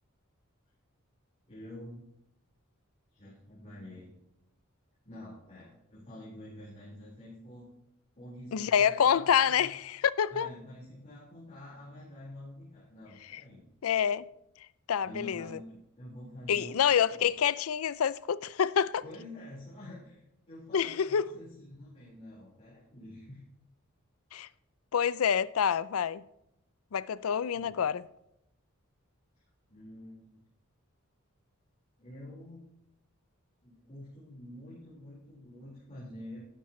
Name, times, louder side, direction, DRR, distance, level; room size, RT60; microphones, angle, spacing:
voice 1, 1.5-2.1 3.1-4.1 5.0-7.7 8.1-9.7 10.3-13.6 15.0-16.8 17.1-17.3 19.0-23.4 27.5-27.7 29.7-30.4 32.0-32.7 33.6-36.5, left 1 dB, 35° left, 4.5 m, -47 dB
voice 2, 8.5-10.5 13.3-13.4 13.8-14.2 14.9-15.5 16.5-19.0 20.7-21.3 24.3-24.5 24.9-26.2 26.9-28.0, left 8 dB, 85° left, 0.4 m, -27 dB
13.0 x 13.0 x 3.2 m
head